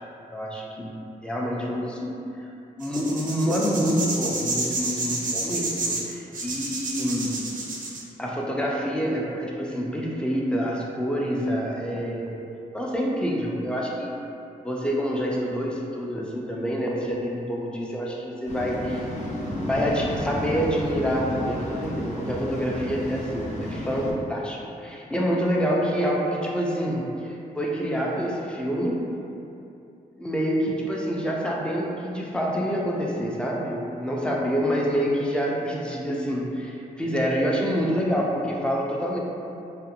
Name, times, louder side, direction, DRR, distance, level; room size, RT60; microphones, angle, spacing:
voice 1, 0.3-0.9 1.2-2.1 2.4-2.5 2.8-7.4 8.2-12.4 12.7-14.1 14.6-19.1 19.6-29.1 30.1-39.2, equal, 5° left, -3 dB, 0.4 m, -27 dB
sound 1, 2.8-8.0, right 2 dB, 60° right, 0.5 m, -30 dB
Waves surf, 18.5-24.1, left 1 dB, 45° left, 0.6 m, -32 dB
2.5 x 2.1 x 2.7 m, 2.7 s
cardioid pair, 85°, 16 cm